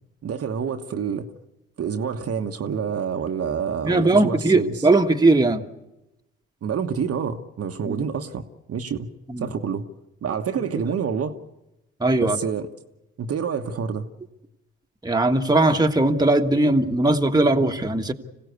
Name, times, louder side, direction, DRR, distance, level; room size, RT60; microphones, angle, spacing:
voice 1, 0.2-1.3 1.8-4.7 6.6-9.1 9.4-9.8 10.2-11.4 12.2-12.7 13.2-14.1, right 7 dB, 50° right, 1.3 m, -27 dB
voice 2, 3.8-5.6 7.9-8.0 9.3-9.5 12.0-12.4 15.0-18.1, right 2 dB, 15° right, 1.6 m, -19 dB
26.0 x 16.5 x 8.2 m
hypercardioid pair, 50°, 30 cm